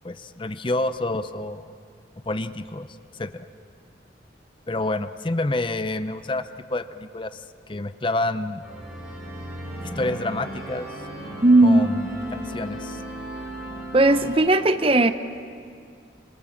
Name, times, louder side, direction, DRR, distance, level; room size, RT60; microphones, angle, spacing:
voice 1, 0.0-1.7 2.3-2.9 3.1-3.5 4.7-7.4 7.7-8.6 10.0-10.9 11.6-13.0, left 2 dB, 25° left, 11 dB, 0.6 m, -28 dB
sound 1, 8.6-14.3, right 1 dB, 5° right, 7.5 m, -36 dB
voice 2, 11.4-11.9 13.9-15.1, right 2 dB, 30° right, 10 dB, 0.8 m, -16 dB
27.0 x 26.5 x 7.2 m, 2.3 s
head